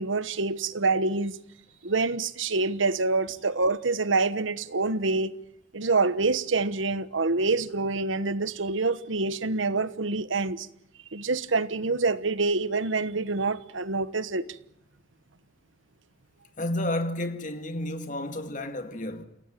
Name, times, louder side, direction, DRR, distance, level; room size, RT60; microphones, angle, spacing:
voice 1, 0.0-1.4 1.8-5.4 5.7-10.7 11.1-14.6, right 3 dB, 75° right, 1.2 m, -26 dB
voice 2, 16.6-19.3, left 1 dB, 40° left, 2.2 m, -31 dB
28.0 x 17.5 x 9.0 m
head